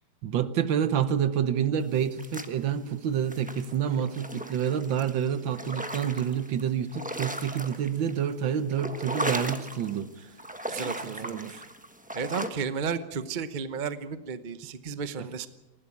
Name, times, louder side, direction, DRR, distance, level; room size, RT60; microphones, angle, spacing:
voice 1, 0.2-10.3 11.0-11.6 15.2-15.3, right 8 dB, 70° right, 12 dB, 1.7 m, -28 dB
sound 1, 2.0-2.9 3.3-6.6 6.9-8.3 8.6-10.0 10.4-12.5, right 1 dB, 5° right, 0.9 m, -36 dB
voice 2, 10.7-11.5 12.1-15.5, right 6 dB, 40° right, 11 dB, 0.7 m, -33 dB
20.0 x 16.5 x 8.5 m, 1.0 s
omnidirectional pair, 2.2 m